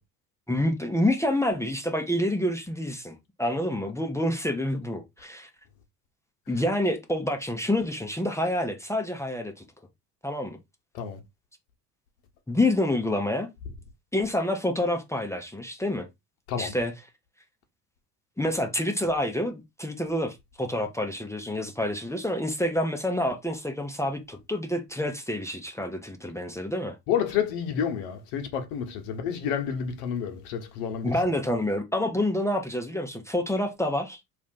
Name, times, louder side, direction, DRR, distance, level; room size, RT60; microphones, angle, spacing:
voice 1, 0.5-5.5 6.5-9.5 10.2-10.6 12.5-13.5 14.1-16.1 16.6-16.9 18.4-27.0 31.0-34.2, left 1 dB, 5° left, 0.5 m, -28 dB
voice 2, 27.1-31.1, left 8 dB, 65° left, 1.0 m, -29 dB
2.7 x 2.4 x 3.6 m
hypercardioid pair, 60°, 49 cm